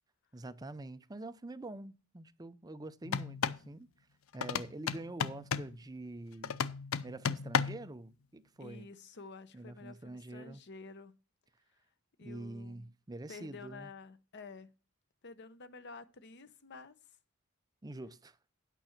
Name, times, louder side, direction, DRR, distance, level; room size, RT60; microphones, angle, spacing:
voice 1, 0.3-3.9 4.3-6.6 7.0-8.9 9.5-10.6 12.2-13.9 17.8-18.4, right 2 dB, 20° right, 0.5 m, -46 dB
sound 1, 3.0-3.7 4.4-5.8 6.4-7.9, left 6 dB, 75° left, 0.5 m, -34 dB
voice 2, 8.6-11.2 12.2-12.8 13.3-14.7 15.2-17.0, left 4 dB, 55° left, 0.9 m, -50 dB
9.2 x 6.1 x 5.8 m
head